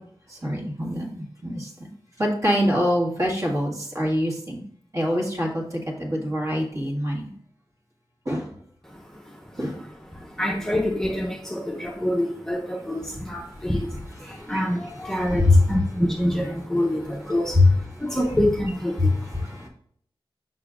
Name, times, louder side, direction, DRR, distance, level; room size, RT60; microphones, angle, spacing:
voice 1, 0.3-1.7 2.2-4.6 4.9-7.3 8.3-8.5 9.6-9.7 14.5-14.6 15.4-15.6 17.5-17.7 19.0-19.1 19.4-19.7, left 1 dB, 35° right, -3 dB, 1.8 m, -23 dB
voice 2, 8.8-19.7, left 1 dB, 5° left, -2 dB, 0.8 m, -27 dB
6.6 x 6.0 x 2.5 m, 0.63 s
wide cardioid pair, 95°, 9 cm